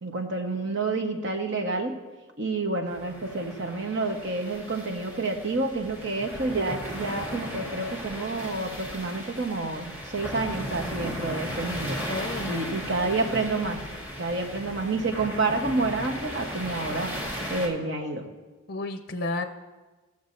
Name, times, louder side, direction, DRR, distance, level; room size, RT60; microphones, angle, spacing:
voice 1, 0.0-2.0 2.4-12.0 12.4-13.8 14.2-17.2 17.5-18.3, right 3 dB, 55° right, 3 dB, 1.1 m, -29 dB
sound 1, 2.9-17.7, equal, 10° right, 1.5 m, -36 dB
voice 2, 12.1-12.6 18.7-19.5, left 2 dB, 45° left, 7 dB, 0.5 m, -31 dB
18.5 x 7.0 x 2.6 m, 1.2 s
head